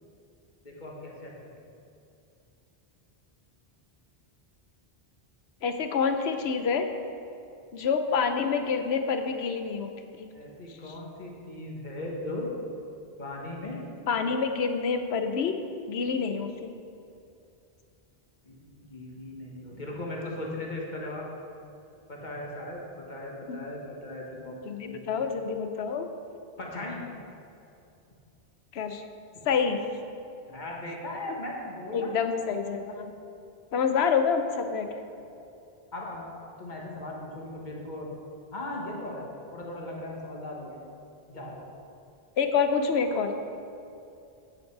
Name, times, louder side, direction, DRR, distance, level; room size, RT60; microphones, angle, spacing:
voice 1, 0.6-1.5 10.3-12.5 13.2-13.8 18.5-21.3 22.1-22.8 23.1-24.6 24.8-25.2 26.6-27.0 30.5-32.1 35.9-36.3 36.6-38.1 38.5-39.2 39.5-40.8 41.3-41.7, left 1 dB, 50° left, -2 dB, 1.7 m, -38 dB
voice 2, 5.6-6.9 7.7-9.9 10.2-10.3 10.7-10.9 14.1-15.6 15.9-16.8 23.5-23.6 24.6-26.1 28.7-29.0 29.4-29.8 31.9-33.1 33.7-34.9 42.4-43.4, left 5 dB, 90° left, 7 dB, 1.0 m, -27 dB
9.5 x 8.0 x 4.7 m, 2.7 s
omnidirectional pair, 1.0 m